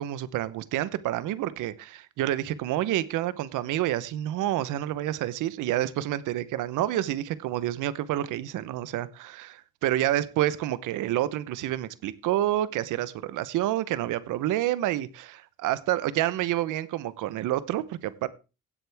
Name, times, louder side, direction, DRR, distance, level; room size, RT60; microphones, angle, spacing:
voice 1, 0.0-18.3, right 13 dB, 90° right, 0.9 m, -28 dB
16.5 x 8.1 x 3.4 m
cardioid pair, 90°, 30 cm